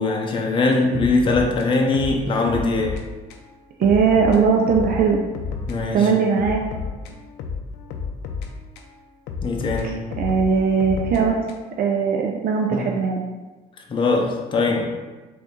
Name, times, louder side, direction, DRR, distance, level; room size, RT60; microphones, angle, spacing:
voice 1, 0.0-3.0 5.7-6.1 9.4-10.0 12.7-12.8 13.9-14.9, left 3 dB, 30° left, 0 dB, 0.6 m, -21 dB
sound 1, 0.9-3.0 3.3-3.5 3.8-5.8 6.0-8.9 9.3-11.8, left 5 dB, 90° left, 0.5 m, -32 dB
voice 2, 3.8-5.2 5.9-6.6 9.8-11.4 11.8-13.2, right 6 dB, 60° right, 1 dB, 0.5 m, -19 dB
4.0 x 2.6 x 3.6 m, 1.2 s
cardioid pair, 110°, 17 cm